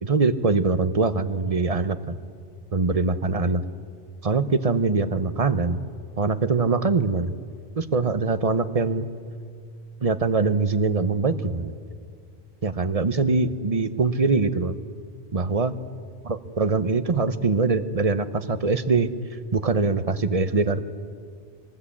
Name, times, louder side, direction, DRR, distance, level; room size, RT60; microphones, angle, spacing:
voice 1, 0.0-2.2 2.7-3.6 4.2-5.8 6.2-7.3 7.8-9.1 10.0-11.7 12.6-14.7 15.3-15.7 16.2-19.2 19.5-20.9, right 4 dB, 35° right, 12 dB, 1.0 m, -23 dB
24.5 x 20.0 x 8.6 m, 2.1 s
omnidirectional pair, 1.1 m